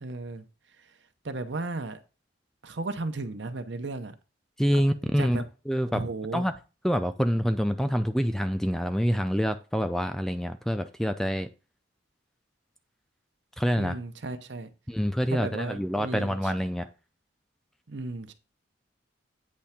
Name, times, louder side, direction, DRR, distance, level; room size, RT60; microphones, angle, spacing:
voice 1, 0.0-0.4 1.2-2.0 2.6-4.1 5.2-5.4 5.9-6.5 13.8-14.7 15.3-16.5 17.9-18.3, right 3 dB, 70° right, 0.8 m, -34 dB
voice 2, 4.6-6.0 6.3-6.5 6.8-11.5 13.6-14.0 14.9-16.9, equal, ahead, 0.3 m, -26 dB
8.6 x 3.3 x 5.8 m
head